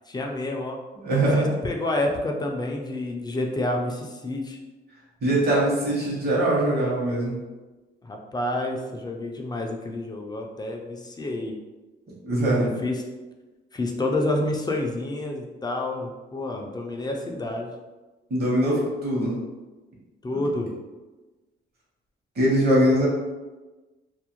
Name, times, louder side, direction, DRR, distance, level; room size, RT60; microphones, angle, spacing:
voice 1, 0.1-0.8 1.2-4.6 8.0-11.6 12.5-13.0 13.7-17.7 20.2-20.7, left 2 dB, 20° left, 1 dB, 0.4 m, -29 dB
voice 2, 1.0-1.5 5.2-7.4 12.2-12.7 18.3-19.4 22.4-23.1, right 1 dB, 55° right, -4 dB, 1.0 m, -22 dB
2.4 x 2.0 x 2.9 m, 1.2 s
cardioid pair, 90°, 20 cm